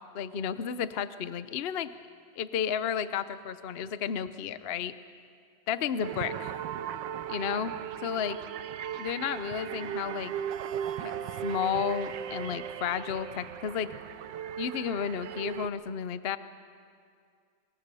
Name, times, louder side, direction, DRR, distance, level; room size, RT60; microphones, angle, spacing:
voice 1, 0.1-1.9 2.4-4.9 5.7-6.5 7.3-7.7 8.0-8.4 8.9-10.3 11.0-13.9 14.6-16.4, left 8 dB, 60° left, 13 dB, 0.6 m, -32 dB
sound 1, 6.0-15.7, right 9 dB, 70° right, 1.4 m, -37 dB
27.0 x 22.5 x 6.9 m, 2.2 s
omnidirectional pair, 2.1 m